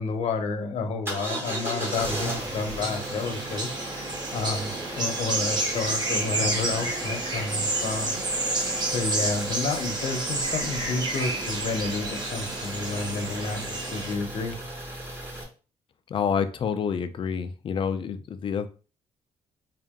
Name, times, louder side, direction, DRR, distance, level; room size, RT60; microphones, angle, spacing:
voice 1, 0.0-8.2 8.8-14.6, left 4 dB, 65° left, 5 dB, 0.8 m, -30 dB
sound 1, 1.1-15.4, right 1 dB, 20° right, 1.3 m, -36 dB
sound 2, 1.4-14.1, right 2 dB, 40° right, 1.2 m, -30 dB
voice 2, 16.1-18.7, left 7 dB, 50° left, 10 dB, 0.4 m, -28 dB
3.7 x 2.5 x 3.6 m, 0.36 s
cardioid pair, 100°, 12 cm